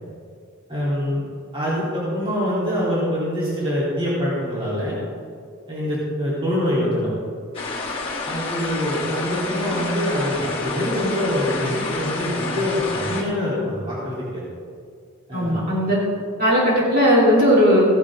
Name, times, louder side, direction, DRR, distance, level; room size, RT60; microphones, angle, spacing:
voice 1, 0.7-1.2 1.5-5.0 5.7-7.1 8.2-14.4 15.3-15.6, equal, 25° right, -8 dB, 3.4 m, -24 dB
sound 1, 7.5-13.2, left 3 dB, 25° left, 1.6 m, -29 dB
voice 2, 15.3-16.0 16.4-17.9, equal, 45° right, -7 dB, 3.6 m, -17 dB
15.5 x 11.5 x 3.7 m, 2.2 s
head